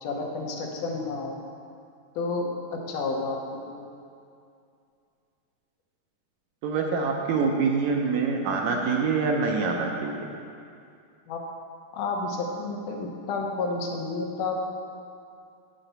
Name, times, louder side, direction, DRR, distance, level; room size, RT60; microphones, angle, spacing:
voice 1, 0.0-1.4 2.2-3.4 3.7-3.9 11.3-11.4 11.9-14.6, left 3 dB, 80° left, 0 dB, 2.4 m, -30 dB
voice 2, 6.6-10.3, right 4 dB, 75° right, 1 dB, 1.9 m, -25 dB
9.0 x 4.3 x 6.7 m, 2.4 s
omnidirectional pair, 3.7 m